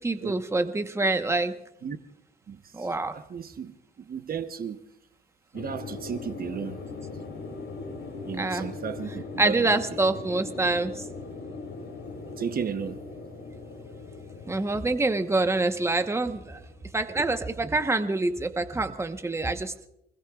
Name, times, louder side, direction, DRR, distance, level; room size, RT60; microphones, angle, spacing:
voice 1, 0.0-1.5 2.7-3.1 8.4-8.7 9.4-11.0 14.5-16.6 16.9-19.7, right 2 dB, 15° right, 1.1 m, -26 dB
voice 2, 2.5-4.8 5.5-6.8 8.3-10.0 12.4-13.0, right 7 dB, 50° right, 1.0 m, -34 dB
sound 1, 5.5-17.8, left 3 dB, 75° left, 4.9 m, -40 dB
28.0 x 21.0 x 2.4 m
cardioid pair, 90°, 20 cm